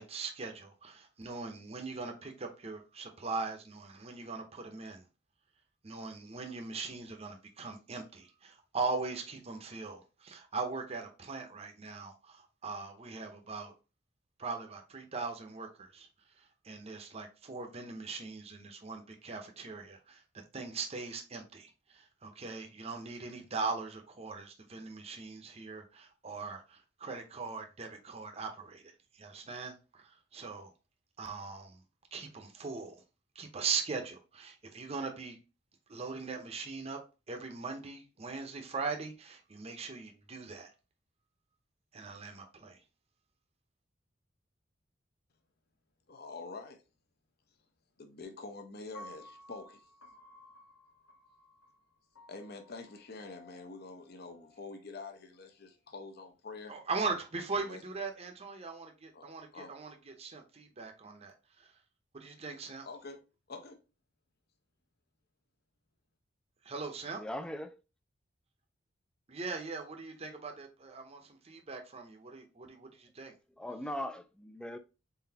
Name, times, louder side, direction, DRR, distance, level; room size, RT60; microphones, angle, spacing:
voice 1, 0.0-5.1 5.8-13.7 14.4-16.1 16.4-20.2 20.5-30.7 31.2-31.8 32.1-33.0 33.3-35.4 35.9-37.0 37.3-40.7 41.9-42.8 56.7-61.7 62.1-62.9 66.6-67.2 69.3-73.3, right 4 dB, 30° right, 0.7 m, -40 dB
voice 2, 46.1-46.8 48.0-49.8 52.3-56.7 57.6-57.8 59.1-59.3 59.5-59.7 62.9-63.2 63.5-63.8, left 3 dB, 50° left, 0.7 m, -46 dB
Piano, 48.9-55.1, left 1 dB, 85° left, 1.1 m, -56 dB
voice 3, 67.2-67.8 72.7-72.8 73.6-74.8, left 1 dB, 5° left, 0.3 m, -39 dB
4.0 x 3.9 x 2.8 m
head